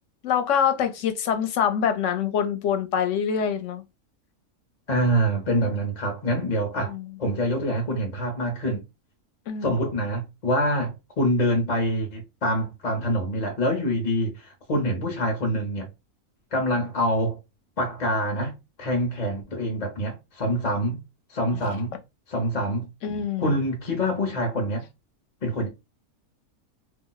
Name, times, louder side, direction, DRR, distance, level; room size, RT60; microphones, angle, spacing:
voice 1, 0.2-3.8 6.9-7.0 9.5-9.7 21.5-21.7 23.0-23.5, left 8 dB, 65° left, 0.9 m, -25 dB
voice 2, 4.9-6.9 7.2-8.8 9.6-15.9 16.5-17.4 17.8-21.0 21.3-22.0 22.3-22.9 23.4-24.8 25.4-25.7, equal, 40° left, 0.6 m, -25 dB
2.5 x 2.0 x 3.8 m
omnidirectional pair, 1.5 m